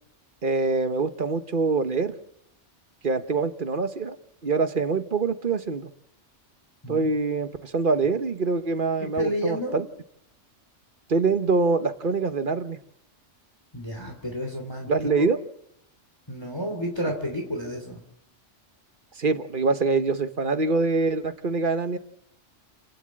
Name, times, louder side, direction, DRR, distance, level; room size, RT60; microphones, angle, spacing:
voice 1, 0.4-2.1 3.0-4.2 4.4-5.9 6.9-9.8 11.1-12.8 14.9-15.4 19.2-22.0, right 4 dB, 45° right, 10 dB, 1.2 m, -24 dB
voice 2, 9.1-9.8 13.7-15.3 16.3-18.0, equal, 20° left, 1 dB, 3.1 m, -31 dB
29.5 x 10.0 x 8.7 m, 0.76 s
omnidirectional pair, 1.3 m